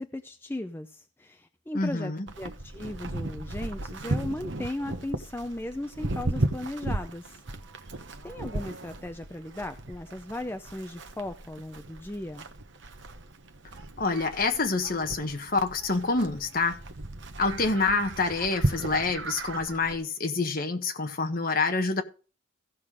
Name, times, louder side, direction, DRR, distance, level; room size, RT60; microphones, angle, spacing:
voice 1, 0.0-7.4 8.2-12.5, left 1 dB, 10° left, 0.5 m, -37 dB
voice 2, 1.7-2.3 14.0-16.8 17.4-22.0, left 3 dB, 45° left, 1.4 m, -27 dB
Livestock farm animals working animals, 2.3-20.0, right 2 dB, 60° right, 1.0 m, -35 dB
15.5 x 5.8 x 4.8 m
head